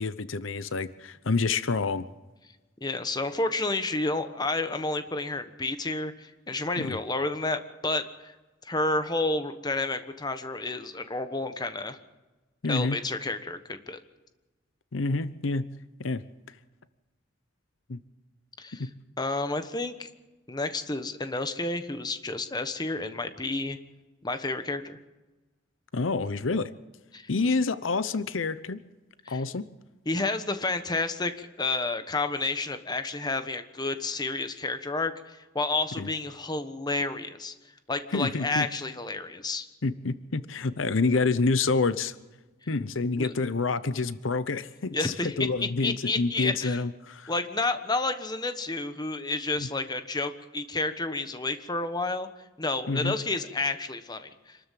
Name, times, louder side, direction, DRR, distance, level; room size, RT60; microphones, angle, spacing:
voice 1, 0.0-2.1 6.8-7.0 12.6-13.0 14.9-15.6 16.0-16.2 17.9-18.0 18.8-18.9 25.9-26.7 27.3-28.8 29.3-29.7 36.0-36.1 38.1-38.7 39.8-42.2 42.7-47.3 49.6-49.7 52.9-53.2, left 3 dB, 80° left, 15 dB, 0.8 m, -28 dB
voice 2, 2.8-8.3 8.6-12.0 12.7-14.0 18.6-18.9 19.2-20.1 20.5-23.8 24.2-25.0 27.1-27.3 29.2-29.4 30.0-37.5 37.9-39.7 43.2-43.3 44.9-45.5 45.8-46.8 47.3-52.3 52.6-54.6, left 2 dB, 20° left, 9 dB, 1.2 m, -30 dB
26.5 x 13.0 x 7.6 m, 1.2 s
head